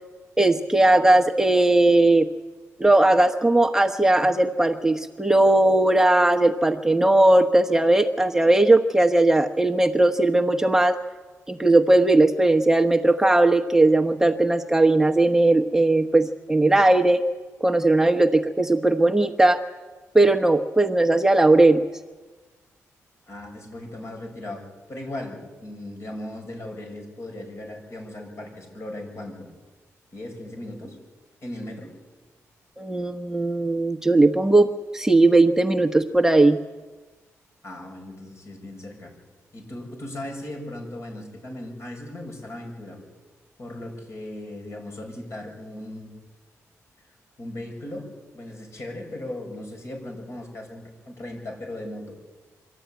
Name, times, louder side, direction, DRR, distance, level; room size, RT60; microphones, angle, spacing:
voice 1, 0.4-2.3 2.8-11.0 11.5-17.2 17.6-19.6 20.1-21.8 32.8-36.6, right 2 dB, 10° right, 4 dB, 1.1 m, -18 dB
voice 2, 23.3-24.6 24.9-29.5 30.1-31.0 31.4-31.9 37.6-39.1 39.5-43.0 43.6-46.1 47.4-48.1 48.3-52.1, left 1 dB, 50° left, 2 dB, 7.0 m, -37 dB
24.5 x 13.0 x 9.3 m, 1.3 s
cardioid pair, 65°, 6 cm